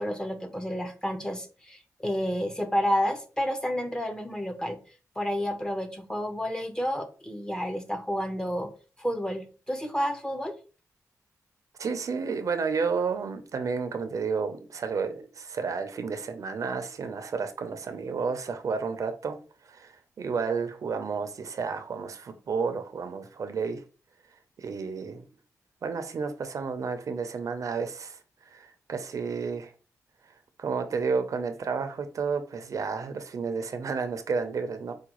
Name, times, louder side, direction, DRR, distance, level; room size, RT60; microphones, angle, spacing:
voice 1, 0.0-4.8 5.2-8.7 9.0-10.5, equal, 10° left, 0.6 m, -30 dB
voice 2, 11.8-19.4 19.6-23.8 24.6-25.2 25.8-29.7 30.6-34.9, right 5 dB, 60° right, 0.5 m, -31 dB
4.7 x 2.2 x 3.0 m
wide cardioid pair, 105°, 6 cm